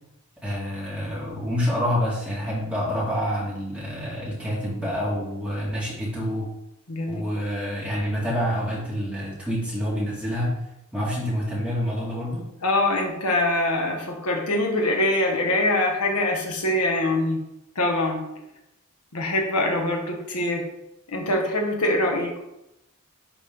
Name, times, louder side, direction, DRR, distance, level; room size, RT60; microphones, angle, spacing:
voice 1, 0.4-6.5 7.1-10.5 10.9-12.4, equal, 5° right, -7 dB, 2.0 m, -27 dB
voice 2, 6.9-7.2 12.6-17.4 17.7-18.2 19.1-20.6 21.1-22.4, left 1 dB, 85° left, 1 dB, 1.5 m, -24 dB
10.5 x 3.5 x 3.7 m, 0.88 s
head